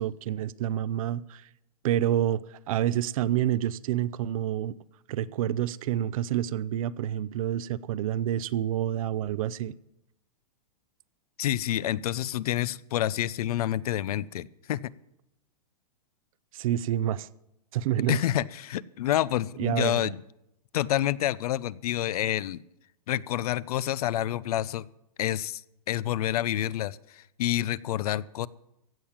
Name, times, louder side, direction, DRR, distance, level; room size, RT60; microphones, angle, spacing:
voice 1, 0.0-1.5 1.8-4.8 5.1-9.7 16.5-17.3 17.7-18.2 19.6-20.1, right 11 dB, 60° right, 0.6 m, -28 dB
voice 2, 11.4-14.9 18.1-20.2 20.7-22.6 23.1-24.9 25.2-28.5, left 13 dB, 70° left, 0.6 m, -28 dB
15.5 x 8.6 x 7.3 m
hypercardioid pair, 145°, 20 cm